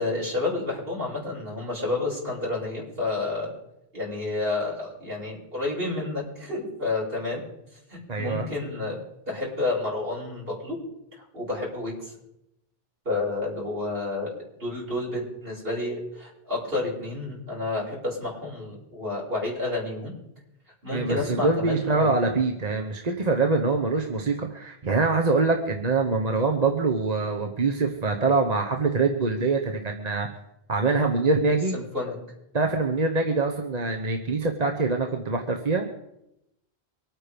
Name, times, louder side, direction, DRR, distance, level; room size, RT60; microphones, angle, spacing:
voice 1, 0.0-3.5 3.9-7.4 7.9-9.0 9.3-10.8 11.3-12.1 13.0-20.1 20.8-22.1 31.5-32.1, left 2 dB, 65° right, -4 dB, 6.8 m, -30 dB
voice 2, 8.1-8.5 20.9-30.3 30.7-31.8 32.5-35.8, right 3 dB, 40° right, 3 dB, 1.1 m, -24 dB
24.5 x 9.1 x 5.2 m, 0.85 s
omnidirectional pair, 1.0 m